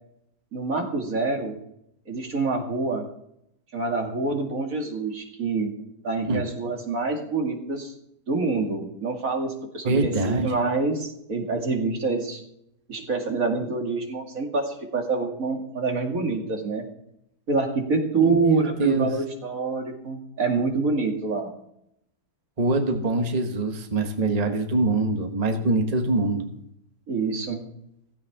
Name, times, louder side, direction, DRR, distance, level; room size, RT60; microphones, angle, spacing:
voice 1, 0.5-1.6 2.1-3.1 3.7-5.7 6.0-7.9 8.3-12.4 12.9-16.9 17.5-21.5 27.1-27.6, right 3 dB, 50° right, 2 dB, 2.5 m, -26 dB
voice 2, 9.8-10.5 18.2-19.1 22.6-26.5, right 2 dB, 25° right, 5 dB, 1.2 m, -24 dB
16.0 x 15.5 x 3.6 m, 0.76 s
omnidirectional pair, 1.8 m